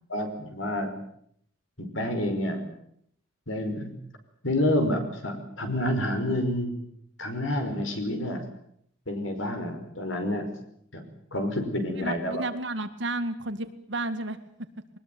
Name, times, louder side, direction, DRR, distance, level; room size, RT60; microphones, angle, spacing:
voice 1, 0.1-0.9 1.8-2.7 3.5-3.9 4.4-6.8 7.2-8.5 9.1-10.5 10.9-11.0 11.3-12.4, left 1 dB, 75° left, 6 dB, 5.4 m, -28 dB
voice 2, 11.9-14.4, right 2 dB, 60° right, 9 dB, 2.1 m, -32 dB
21.5 x 20.5 x 9.3 m, 0.68 s
head